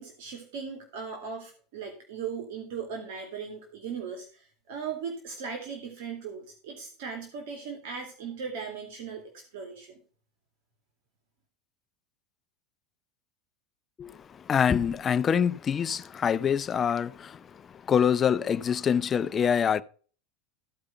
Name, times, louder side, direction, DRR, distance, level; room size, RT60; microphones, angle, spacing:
voice 1, 0.0-10.0, right 6 dB, 70° right, 2.4 m, -38 dB
voice 2, 14.0-19.8, left 7 dB, 25° left, 0.5 m, -25 dB
14.5 x 4.9 x 5.5 m
supercardioid pair, 125°, 0 cm